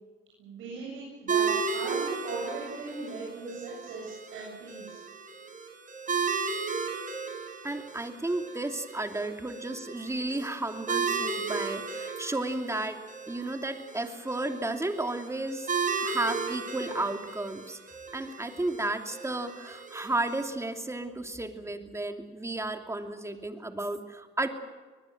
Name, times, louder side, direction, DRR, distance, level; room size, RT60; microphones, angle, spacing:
voice 1, 0.4-5.0 6.4-6.7, right 3 dB, 90° right, -4 dB, 8.0 m, -39 dB
sound 1, 1.3-20.4, right 5 dB, 40° right, 4.4 m, -35 dB
voice 2, 7.6-13.0 13.3-15.7 16.0-17.8 18.1-24.5, right 2 dB, 15° right, 5 dB, 2.8 m, -33 dB
23.0 x 20.5 x 7.9 m, 1.4 s
cardioid pair, 90°, 20 cm